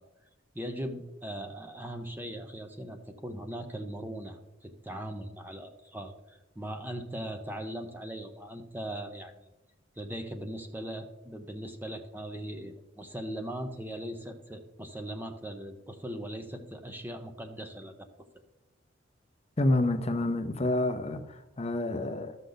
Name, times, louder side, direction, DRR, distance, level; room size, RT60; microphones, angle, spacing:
voice 1, 0.5-9.3 10.0-18.1, right 1 dB, 10° right, 0.7 m, -39 dB
voice 2, 19.6-22.4, left 2 dB, 35° left, 0.6 m, -28 dB
12.5 x 6.6 x 3.9 m
head